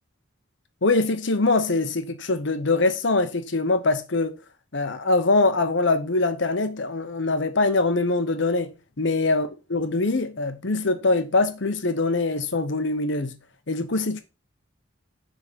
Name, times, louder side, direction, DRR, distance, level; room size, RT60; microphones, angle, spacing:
voice 1, 0.8-4.3 4.7-8.7 9.0-13.3 13.7-14.2, left 3 dB, 60° left, 0.9 m, -23 dB
6.8 x 3.8 x 5.1 m
head